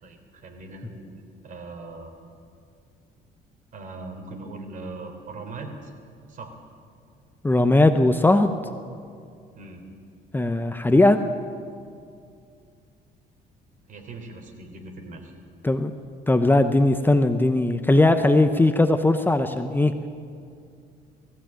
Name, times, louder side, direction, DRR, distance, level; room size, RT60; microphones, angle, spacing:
voice 1, 0.0-2.1 3.7-5.9 6.3-6.5 9.5-9.8 13.9-15.3, right 3 dB, 50° right, 5 dB, 3.6 m, -40 dB
voice 2, 7.4-8.5 10.3-11.2 15.6-15.9 16.3-19.9, left 2 dB, 10° left, 8 dB, 0.8 m, -19 dB
19.0 x 15.0 x 9.0 m, 2.4 s
cardioid pair, 110°, 17 cm